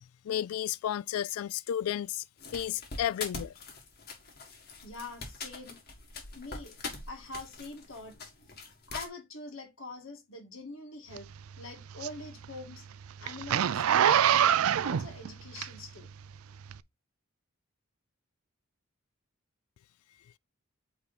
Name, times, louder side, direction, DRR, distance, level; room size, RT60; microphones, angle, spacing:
voice 1, 0.3-2.2 2.5-3.5, left 10 dB, 90° left, 0.3 m, -32 dB
sound 1, 2.4-9.1, left 3 dB, 45° left, 1.9 m, -43 dB
voice 2, 4.8-5.8 6.3-6.8 7.1-8.2 8.9-11.3 11.6-12.9 13.2-16.1, left 2 dB, 65° left, 2.1 m, -44 dB
Zipper (clothing), 11.2-16.1 16.7-16.8, right 9 dB, 80° right, 0.4 m, -25 dB
8.6 x 3.6 x 4.2 m
head